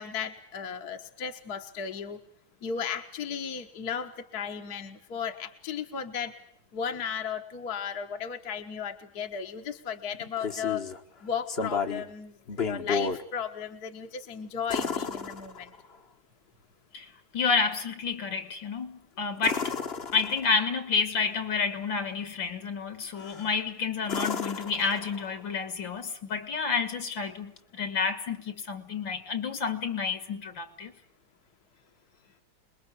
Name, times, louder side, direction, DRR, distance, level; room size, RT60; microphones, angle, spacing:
voice 1, 0.0-2.2 2.6-6.3 6.7-10.8 11.2-15.7, left 7 dB, 50° left, 1.8 m, -35 dB
sound 1, 10.1-11.0 11.5-12.1 12.5-13.2 14.7-16.0 19.4-20.7 23.2-23.5 24.0-25.4 27.6-27.7, left 5 dB, 35° left, 1.4 m, -32 dB
voice 2, 16.9-19.7 20.1-30.9, left 5 dB, 70° left, 2.9 m, -30 dB
27.5 x 21.5 x 8.4 m
omnidirectional pair, 2.2 m